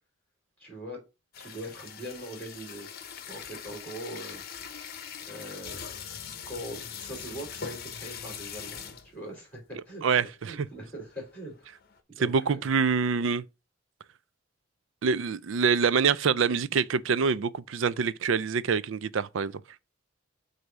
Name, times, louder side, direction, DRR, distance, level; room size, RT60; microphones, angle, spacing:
voice 1, 0.6-1.0 1.4-2.9 3.2-4.4 5.3-6.0 6.5-10.0 10.4-11.7 12.1-12.7, right 1 dB, 10° left, 3.4 m, -41 dB
sound 1, 1.3-9.2 9.7-9.8 10.0-10.3 10.7-12.0, left 7 dB, 50° left, 0.9 m, -42 dB
voice 2, 10.0-10.7 12.2-13.4 15.0-19.5, right 5 dB, 75° right, 0.4 m, -25 dB
7.9 x 2.7 x 6.0 m
head